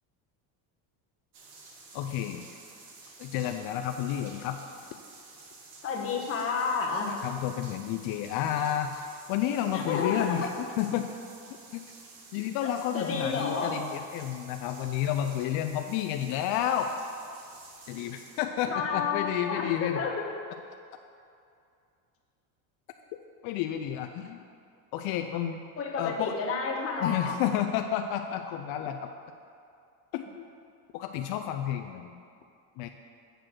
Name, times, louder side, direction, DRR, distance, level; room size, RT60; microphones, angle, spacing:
sound 1, 1.3-18.4, right 3 dB, 65° right, 1.6 m, -51 dB
voice 1, 1.9-2.4 3.2-4.6 7.1-11.1 11.7-11.8 12.3-17.0 17.9-20.0 23.4-24.4 24.9-25.6 26.0-26.3 27.0-29.1 30.1-30.4 30.9-32.1 32.8-32.9, left 10 dB, 55° left, 6 dB, 0.5 m, -31 dB
voice 2, 5.8-7.2 9.7-10.5 12.9-13.7 17.9-18.1 18.6-20.3 25.8-27.4, left 5 dB, 30° left, -1 dB, 1.2 m, -31 dB
7.7 x 4.6 x 6.2 m, 2.4 s
cardioid pair, 130°, 44 cm